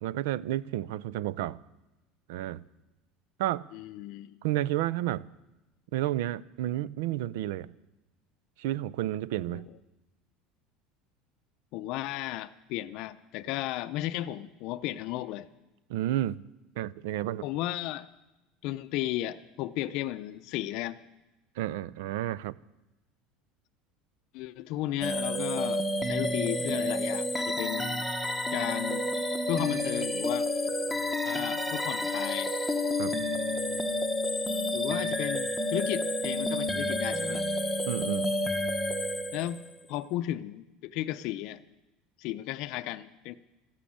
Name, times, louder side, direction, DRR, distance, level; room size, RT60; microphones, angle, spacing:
voice 1, 0.0-1.6 2.3-2.6 3.4-3.7 4.4-5.3 5.9-7.7 8.6-9.7 15.9-16.4 16.8-17.4 21.6-22.5 33.0-33.2 37.9-38.3, right 13 dB, 80° right, 0.5 m, -31 dB
voice 2, 3.7-4.3 9.5-9.6 11.7-15.5 17.4-18.1 18.6-21.0 24.3-28.1 28.5-29.1 29.5-30.5 31.2-32.5 34.7-37.4 39.3-39.6 39.9-41.6 42.2-43.4, left 14 dB, 50° left, 0.5 m, -34 dB
sound 1, 25.0-39.8, left 1 dB, ahead, 0.9 m, -30 dB
14.0 x 11.5 x 8.6 m
cardioid pair, 165°, 0 cm